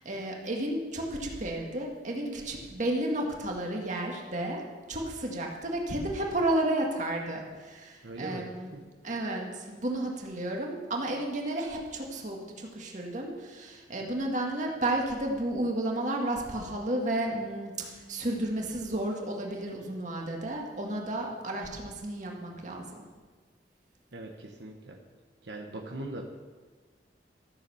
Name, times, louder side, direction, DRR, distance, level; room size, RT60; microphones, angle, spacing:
voice 1, 0.0-4.6 4.9-8.7 9.0-23.0, right 1 dB, 45° right, 0 dB, 1.9 m, -32 dB
voice 2, 8.0-8.8 24.1-25.0 25.4-26.2, right 1 dB, 80° right, 1 dB, 1.1 m, -40 dB
14.0 x 6.9 x 7.0 m, 1.4 s
head